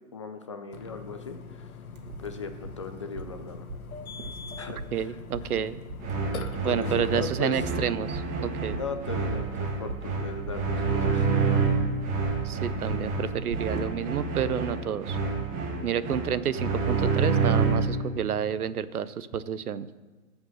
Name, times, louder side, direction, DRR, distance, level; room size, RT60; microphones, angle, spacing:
voice 1, 0.1-1.7 2.2-3.7 4.6-4.8 5.0-5.1 5.5-5.6 6.7-7.5 8.7-11.3, left 4 dB, 25° left, 7 dB, 0.4 m, -37 dB
Burping eructation, 0.7-7.1, left 5 dB, 75° left, 1.0 m, -42 dB
sound 1, 1.9-13.8, right 2 dB, 60° right, 1.9 m, -41 dB
voice 2, 4.9-5.8 6.6-8.8 12.4-15.2 15.8-19.9, right 8 dB, 80° right, 16 dB, 0.7 m, -30 dB
sound 2, 6.0-18.0, right 4 dB, 20° right, 1.3 m, -28 dB
14.5 x 5.2 x 6.5 m, 1.3 s
hypercardioid pair, 135°, 44 cm